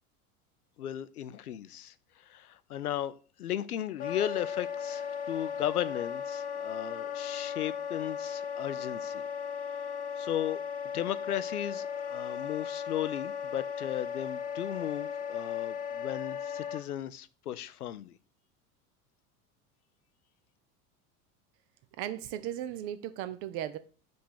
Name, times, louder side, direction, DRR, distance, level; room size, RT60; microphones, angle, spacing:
voice 1, 0.8-1.9 2.3-3.1 3.4-9.2 10.2-10.6 10.9-18.2, left 11 dB, 80° left, 0.5 m, -35 dB
Wind instrument woodwind instrument, 4.0-16.8, left 7 dB, 20° left, 0.6 m, -36 dB
voice 2, 22.0-23.8, right 11 dB, 30° right, 0.4 m, -36 dB
5.1 x 3.3 x 5.5 m
figure-of-eight pair, 75°, 45 cm